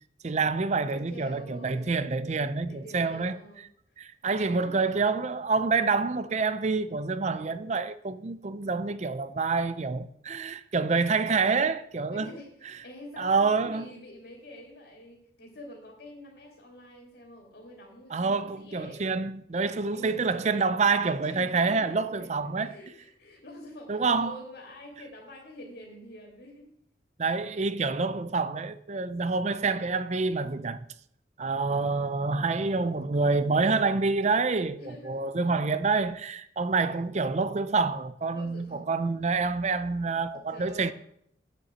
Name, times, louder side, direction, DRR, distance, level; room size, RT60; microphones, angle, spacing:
voice 1, 0.2-3.4 4.0-12.3 13.2-13.9 18.1-22.8 23.9-24.3 27.2-30.9 31.4-40.9, right 4 dB, 35° right, 0.5 m, -27 dB
voice 2, 0.9-2.0 2.7-3.7 4.2-4.8 12.1-19.0 19.9-20.3 20.8-26.7 34.8-35.3 36.7-37.0 38.3-39.1 40.5-40.9, left 1 dB, 60° left, 2.6 m, -47 dB
9.5 x 6.8 x 7.5 m
head